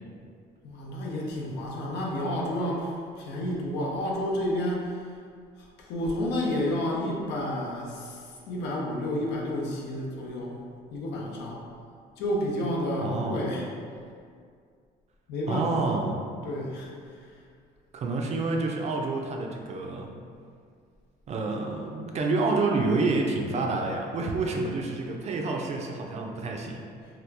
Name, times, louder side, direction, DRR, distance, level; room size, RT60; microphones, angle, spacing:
voice 1, 0.6-5.1 5.6-10.6 10.9-11.6 12.2-13.7 15.3-16.1 16.4-16.9, left 1 dB, 85° left, -2 dB, 0.6 m, -30 dB
voice 2, 13.0-13.5 15.5-16.2 17.9-20.1 21.3-26.8, right 3 dB, 40° right, 1 dB, 0.4 m, -28 dB
2.9 x 2.3 x 3.3 m, 2.2 s
cardioid pair, 110°, 17 cm